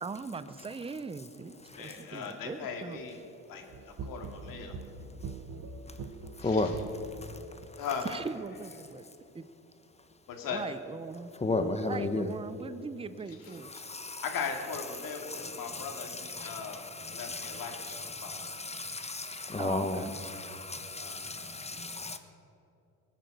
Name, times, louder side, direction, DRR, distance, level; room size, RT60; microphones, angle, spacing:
voice 1, 0.0-3.0 8.0-9.0 9.3-9.4 10.4-13.7 19.6-20.1, right 4 dB, 15° right, 13 dB, 0.7 m, -40 dB
voice 2, 1.7-3.2 3.5-4.8 5.9-6.1 6.4-6.8 7.8-8.1 10.3-10.6 13.3-13.4 13.7-13.8 14.2-18.5 21.0-21.5, left 6 dB, 65° left, 3 dB, 2.5 m, -39 dB
sound 1, 3.7-7.8, right 4 dB, 50° right, 1.2 m, -43 dB
voice 3, 6.4-6.8 7.2-7.3 11.4-12.3 13.6-14.2 15.3-22.2, left 2 dB, 15° left, 8 dB, 1.2 m, -34 dB
19.5 x 9.2 x 6.7 m, 2.8 s
supercardioid pair, 80°, 36 cm